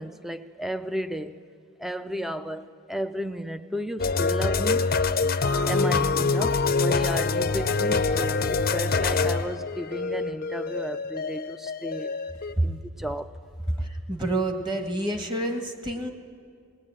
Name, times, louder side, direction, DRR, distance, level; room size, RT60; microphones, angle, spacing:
voice 1, 0.0-1.4 1.8-4.9 5.7-12.1 12.6-13.3 13.8-13.9, equal, ahead, 0.5 m, -33 dB
sound 1, 4.0-12.5, left 4 dB, 45° left, 0.6 m, -25 dB
voice 2, 14.1-16.1, right 1 dB, 20° right, 1.6 m, -27 dB
20.5 x 19.5 x 8.9 m
head